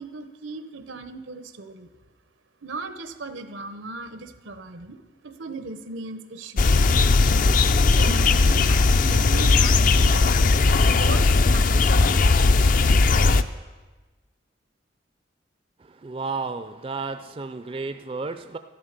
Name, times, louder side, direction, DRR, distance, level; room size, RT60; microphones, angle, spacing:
voice 1, 0.0-1.9 2.6-6.9 7.8-10.1 10.9-12.3, right 3 dB, 85° right, 10 dB, 0.9 m, -37 dB
sound 1, 6.6-13.4, left 3 dB, 45° left, 0.4 m, -18 dB
voice 2, 16.0-18.6, right 4 dB, 30° right, 9 dB, 0.4 m, -32 dB
13.0 x 11.0 x 6.6 m, 1.3 s
head